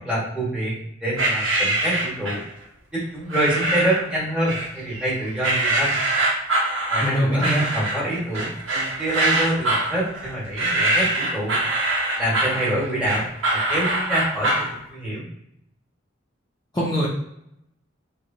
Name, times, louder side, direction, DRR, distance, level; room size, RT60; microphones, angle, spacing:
voice 1, 0.0-2.4 2.9-6.0 6.9-7.5 7.7-11.6 12.2-13.2 13.5-15.3, right 1 dB, 5° right, -7 dB, 1.1 m, -26 dB
sound 1, 1.2-2.5 3.3-4.1 4.5-5.1 5.4-14.7, right 2 dB, 85° right, 0.8 m, -23 dB
voice 2, 7.0-7.6 16.7-17.1, equal, 20° left, -8 dB, 0.5 m, -22 dB
3.0 x 2.2 x 2.5 m, 0.75 s
head